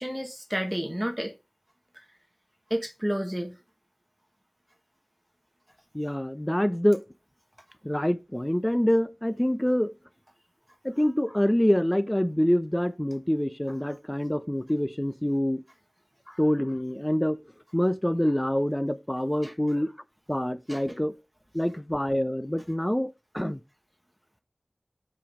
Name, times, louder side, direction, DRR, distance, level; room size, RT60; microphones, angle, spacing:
voice 1, 0.0-1.3 2.7-3.6 19.4-19.5 20.7-21.0, equal, 15° right, 1.4 m, -31 dB
voice 2, 5.9-7.0 7.8-9.9 10.8-15.6 16.3-17.4 17.7-19.9 20.3-21.1 21.5-23.6, equal, 15° left, 0.7 m, -26 dB
7.5 x 5.3 x 3.7 m
wide cardioid pair, 45°, 0 cm